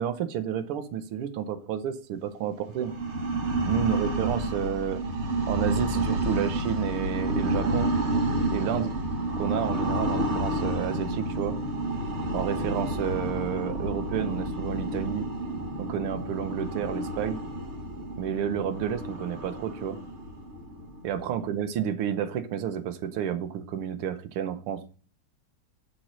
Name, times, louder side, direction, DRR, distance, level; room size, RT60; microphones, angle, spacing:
voice 1, 0.0-2.9 3.7-5.0 5.5-7.9 8.5-8.9 9.4-11.6 12.3-15.3 15.8-17.4 18.2-20.0 21.0-24.8, right 9 dB, 85° right, 10 dB, 1.7 m, -30 dB
sound 1, 2.7-21.4, right 1 dB, 40° right, 1.0 m, -30 dB
6.0 x 4.3 x 6.1 m, 0.39 s
omnidirectional pair, 2.4 m